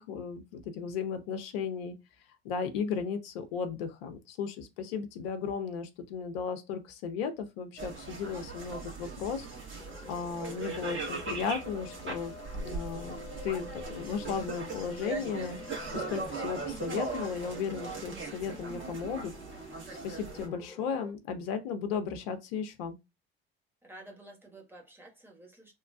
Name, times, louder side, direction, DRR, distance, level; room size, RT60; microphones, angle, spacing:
voice 1, 0.0-2.0 2.4-9.5 10.1-19.3 19.6-19.7 20.0-23.0, left 6 dB, 70° left, 0.6 m, -35 dB
sound 1, 7.8-20.5, right 4 dB, 40° right, 1.4 m, -39 dB
sound 2, 9.8-21.1, left 5 dB, 10° left, 0.7 m, -49 dB
voice 2, 23.8-25.7, right 1 dB, 5° right, 1.3 m, -51 dB
2.9 x 2.2 x 2.3 m
hypercardioid pair, 60°, 31 cm